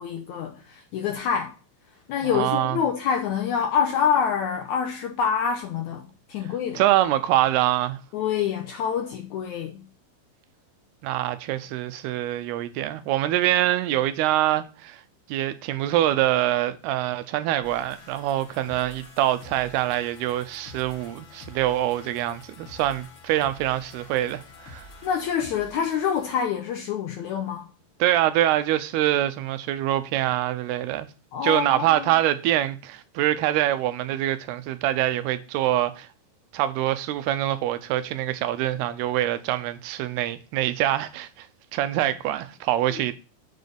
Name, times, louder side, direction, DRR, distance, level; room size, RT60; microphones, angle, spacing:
voice 1, 0.0-1.6 2.1-6.8 8.1-9.9 25.0-27.7 31.3-32.1 42.9-43.0, left 7 dB, 85° left, 1.6 m, -26 dB
voice 2, 2.2-2.8 6.8-8.0 11.0-15.0 15.3-24.9 28.0-31.1 31.4-36.1 36.5-41.5 41.7-43.1, right 13 dB, 85° right, 2.8 m, -24 dB
sound 1, 17.6-26.4, left 3 dB, 65° left, 1.2 m, -48 dB
7.3 x 4.1 x 6.7 m
omnidirectional pair, 4.5 m